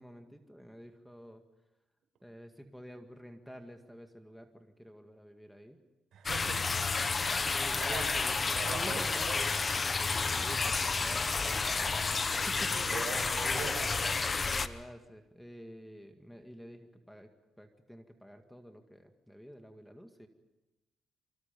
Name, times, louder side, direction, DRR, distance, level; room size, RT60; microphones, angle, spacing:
voice 1, 0.0-1.4 2.2-5.8 6.3-6.7 7.5-9.5 9.7-12.1 12.3-13.0 13.4-13.7 14.3-17.3 17.6-20.3, equal, ahead, 6 dB, 2.0 m, -49 dB
voice 2, 6.1-8.0 8.5-9.4 10.3-10.6 12.5-14.3, right 6 dB, 70° right, 3 dB, 6.5 m, -43 dB
sound 1, 6.3-14.7, left 4 dB, 30° left, 1.1 m, -31 dB
28.0 x 25.0 x 5.4 m, 1.0 s
cardioid pair, 90°, 0 cm